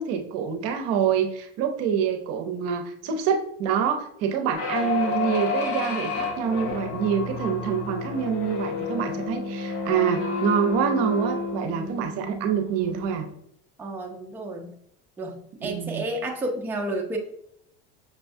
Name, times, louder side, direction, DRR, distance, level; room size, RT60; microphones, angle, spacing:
voice 1, 0.0-13.3 15.6-16.0, right 7 dB, 55° right, 6 dB, 0.7 m, -26 dB
sound 1, 4.5-13.3, left 3 dB, 50° left, 1.0 m, -30 dB
voice 2, 13.8-14.7 15.2-17.2, right 1 dB, 5° right, 1 dB, 0.5 m, -31 dB
6.1 x 2.2 x 2.6 m, 0.72 s
supercardioid pair, 125°, 29 cm